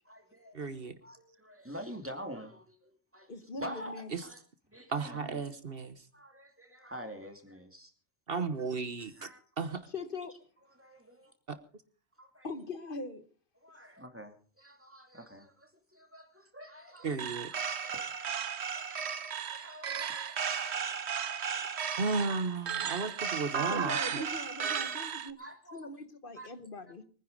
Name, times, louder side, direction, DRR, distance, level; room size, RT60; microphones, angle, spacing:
voice 1, 0.0-0.6 1.0-5.5 6.1-7.9 9.0-9.4 10.8-11.3 12.2-12.5 13.6-18.4 18.7-22.3 22.9-23.2 25.4-25.9 26.3-26.5, equal, 10° right, 2.6 m, -48 dB
voice 2, 0.5-0.9 4.9-5.9 8.3-9.3 9.6-9.8 11.5-11.6 17.0-17.5 22.0-24.3, right 4 dB, 60° right, 1.4 m, -34 dB
voice 3, 3.3-4.1 9.9-10.3 12.4-13.2 23.7-25.4 25.7-27.0, left 3 dB, 55° left, 1.4 m, -41 dB
sound 1, 17.2-25.3, right 7 dB, 90° right, 1.2 m, -35 dB
23.0 x 10.0 x 5.3 m
omnidirectional pair, 1.1 m